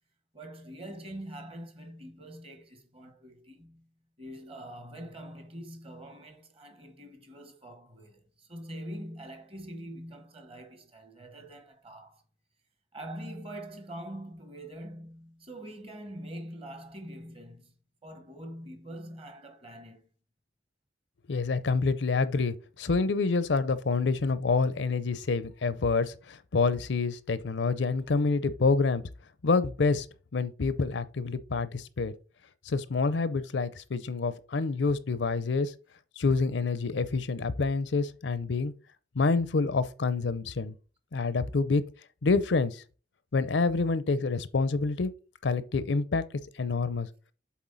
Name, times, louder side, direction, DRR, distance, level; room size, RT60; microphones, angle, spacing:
voice 1, 0.3-3.9 4.2-12.2 12.9-17.7 18.0-20.1, right 1 dB, 30° right, 1.3 m, -44 dB
voice 2, 21.3-29.0 29.4-30.1 30.3-32.1 32.7-35.7 36.2-38.7 39.2-40.7 41.1-41.8 42.2-42.8 43.3-45.1 45.4-46.2 46.6-47.1, left 4 dB, 70° left, 0.6 m, -27 dB
7.3 x 4.3 x 3.9 m
head